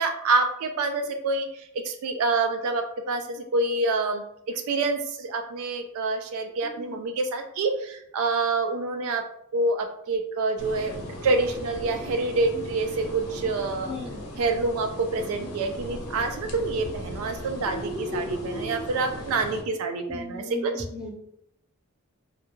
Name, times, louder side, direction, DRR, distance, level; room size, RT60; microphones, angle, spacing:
voice 1, 0.0-9.3 9.5-10.9 11.2-13.9 14.4-20.9, right 3 dB, 70° right, 6 dB, 0.3 m, -27 dB
sound 1, 10.6-19.6, left 1 dB, 90° left, 0.6 m, -38 dB
voice 2, 13.9-14.2 17.6-18.8 20.1-21.1, left 1 dB, 5° right, -5 dB, 0.6 m, -35 dB
2.2 x 2.1 x 3.0 m, 0.74 s
head